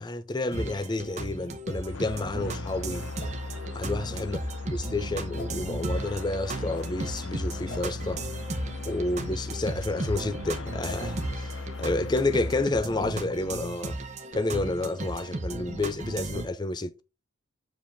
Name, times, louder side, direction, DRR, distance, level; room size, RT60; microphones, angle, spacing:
voice 1, 0.0-3.1 3.7-4.4 4.6-8.2 8.9-14.0 14.3-17.0, left 2 dB, 20° left, 0.5 m, -30 dB
sound 1, 0.5-16.5, right 2 dB, 35° right, 0.9 m, -36 dB
sound 2, 0.9-1.1 2.1-2.2 3.2-3.3 4.2-4.3 5.3-5.5 6.7-6.9 7.7-7.8 8.8-9.0 9.8-9.9 10.8-11.0, left 3 dB, 40° left, 0.9 m, -43 dB
sound 3, 1.9-12.7, left 3 dB, 75° left, 0.7 m, -37 dB
6.8 x 5.0 x 3.5 m
head